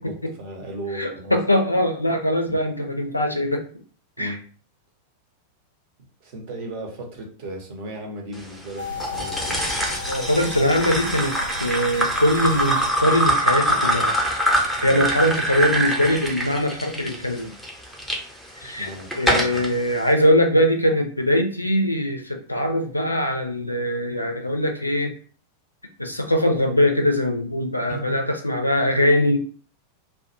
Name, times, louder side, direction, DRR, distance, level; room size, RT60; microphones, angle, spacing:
voice 1, 0.0-1.4 2.5-2.6 4.2-4.4 6.2-9.7 18.6-19.6 27.9-28.2, right 1 dB, 50° right, 1 dB, 0.8 m, -36 dB
voice 2, 0.9-3.7 4.2-4.4 10.1-14.1 14.6-17.5 18.6-18.9 19.2-25.1 26.0-29.4, left 1 dB, 85° left, 5 dB, 0.4 m, -22 dB
sound 1, 8.8-12.9, left 3 dB, 85° right, 0.4 m, -35 dB
sound 2, 9.0-18.2 18.7-19.7, right 1 dB, ahead, 0.7 m, -24 dB
2.3 x 2.2 x 2.7 m, 0.42 s
figure-of-eight pair, 90°, 0 cm